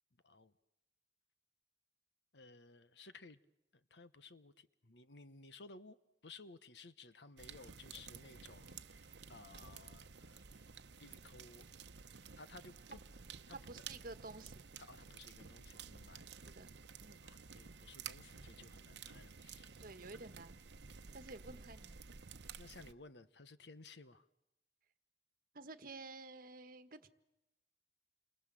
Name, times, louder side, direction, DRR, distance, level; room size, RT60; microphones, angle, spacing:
voice 1, 2.3-3.4 3.9-6.0 6.2-10.4 11.0-11.6 12.4-13.0 13.5-13.6 14.8-16.3 17.2-19.7 22.6-24.2, left 3 dB, 75° left, 1.2 m, -57 dB
sound 1, 7.4-22.9, right 6 dB, 75° right, 0.9 m, -53 dB
voice 2, 13.5-14.7 16.5-16.7 17.0-17.2 19.8-20.6 21.1-22.0 25.5-27.1, right 3 dB, 55° right, 1.6 m, -51 dB
29.0 x 24.0 x 7.7 m
head